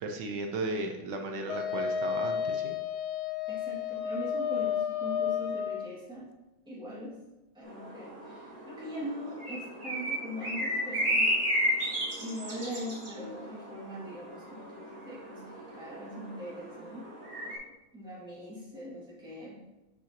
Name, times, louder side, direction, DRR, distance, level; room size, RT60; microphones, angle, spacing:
voice 1, 0.0-2.8, right 2 dB, 65° right, 3 dB, 1.2 m, -35 dB
Wind instrument woodwind instrument, 1.5-5.9, left 8 dB, 80° left, 1.4 m, -32 dB
voice 2, 3.5-6.3 6.7-7.2 7.5-11.3 11.7-17.1 17.9-19.6, equal, ahead, -7 dB, 1.8 m, -41 dB
sound 1, 7.6-17.6, equal, 35° right, 1.9 m, -34 dB
7.4 x 6.1 x 2.9 m, 1.0 s
omnidirectional pair, 2.3 m